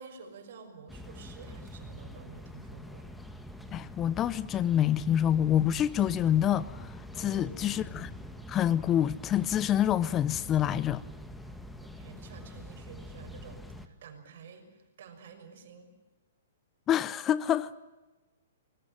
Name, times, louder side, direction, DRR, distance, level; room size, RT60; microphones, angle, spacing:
voice 1, 0.0-3.1 7.1-7.8 11.4-11.6 11.8-16.0, right 5 dB, 60° right, 6.2 m, -50 dB
sound 1, 0.9-13.9, left 1 dB, 5° left, 2.0 m, -45 dB
voice 2, 3.7-6.9 7.2-8.1 8.5-11.0 16.9-17.7, left 10 dB, 25° left, 0.7 m, -27 dB
25.5 x 21.0 x 9.0 m
hypercardioid pair, 125°, 0 cm